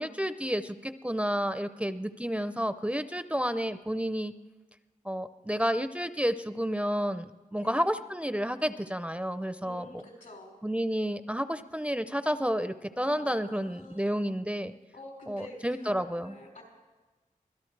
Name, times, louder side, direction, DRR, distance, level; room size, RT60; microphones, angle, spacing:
voice 1, 0.0-4.3 5.0-10.0 10.6-14.7 15.3-16.3, equal, 10° right, 11 dB, 0.4 m, -30 dB
voice 2, 9.6-10.5 13.0-14.3 14.9-16.6, left 1 dB, 80° left, -3 dB, 5.1 m, -48 dB
24.5 x 17.0 x 3.2 m, 1.2 s
wide cardioid pair, 100°, 14 cm